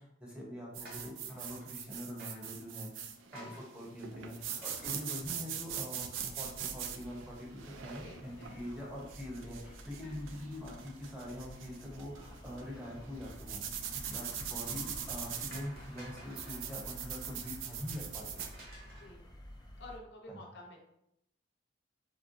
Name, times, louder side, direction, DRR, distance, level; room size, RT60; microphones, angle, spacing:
voice 1, 0.0-2.9 3.3-13.6 13.9-18.4 20.3-20.4, equal, 5° right, -4 dB, 0.7 m, -44 dB
sound 1, 0.7-18.5, right 8 dB, 80° right, 0.3 m, -42 dB
sound 2, 0.8-1.8 2.2-2.6 3.3-3.7 4.6-5.9 6.3-6.4 6.7-6.8 8.2-8.7 9.7-10.5 10.8-11.1 14.6-14.9 15.5-16.7 17.9-19.2, right 1 dB, 55° right, 0.8 m, -54 dB
voice 2, 3.3-3.7 8.0-8.8 14.3-14.5 18.8-19.3 19.8-20.8, left 1 dB, 65° left, 0 dB, 0.6 m, -52 dB
sound 3, 6.2-20.0, left 1 dB, 20° left, 0.4 m, -51 dB
3.7 x 2.0 x 2.6 m, 0.80 s
head